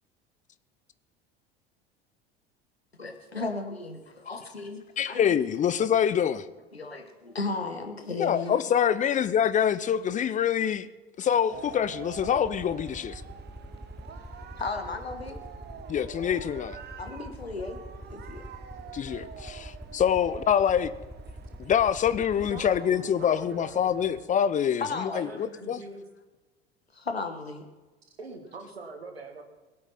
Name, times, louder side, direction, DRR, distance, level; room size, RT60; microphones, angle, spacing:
voice 1, 3.0-5.4 6.7-8.6 14.6-15.4 17.0-17.8 18.1-18.4 24.8-25.2 26.9-27.6, left 3 dB, 85° left, 1.6 m, -35 dB
voice 2, 5.0-6.5 8.2-10.9 11.2-13.2 15.9-16.8 18.9-20.9 21.6-25.8, left 8 dB, 25° left, 0.7 m, -25 dB
sound 1, 11.5-24.3, right 8 dB, 35° right, 1.2 m, -46 dB
Aircraft, 12.2-22.8, equal, ahead, 0.3 m, -45 dB
voice 3, 22.4-24.0 25.1-26.1 28.2-29.4, right 3 dB, 80° right, 2.1 m, -43 dB
22.0 x 8.5 x 4.3 m
figure-of-eight pair, 70°, 31 cm